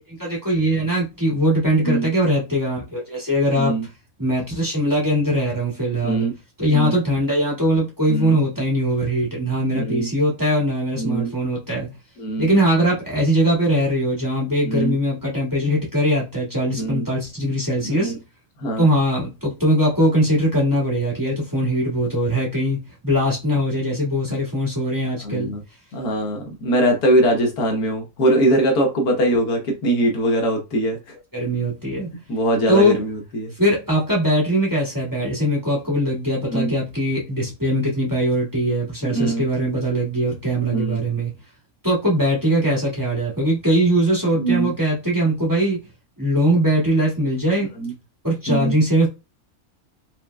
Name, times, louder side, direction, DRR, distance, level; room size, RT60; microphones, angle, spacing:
voice 1, 0.2-3.8 4.2-6.3 6.6-11.9 12.4-18.1 18.8-25.5 31.3-32.1 32.7-33.0 33.6-41.3 41.8-45.8 46.2-47.7 48.2-49.1, equal, 15° right, 1.9 m, -21 dB
voice 2, 3.5-3.9 6.0-6.3 6.7-6.9 8.1-8.4 9.7-10.1 11.0-11.3 12.2-12.5 14.6-15.0 16.7-17.1 17.8-18.2 18.6-18.9 24.3-24.4 25.2-25.6 25.9-31.0 32.1-33.5 36.5-36.7 39.0-39.4 40.7-41.0 44.4-44.7 47.8-47.9 48.5-48.8, right 1 dB, 85° left, 1.7 m, -22 dB
5.7 x 3.6 x 2.3 m
omnidirectional pair, 1.6 m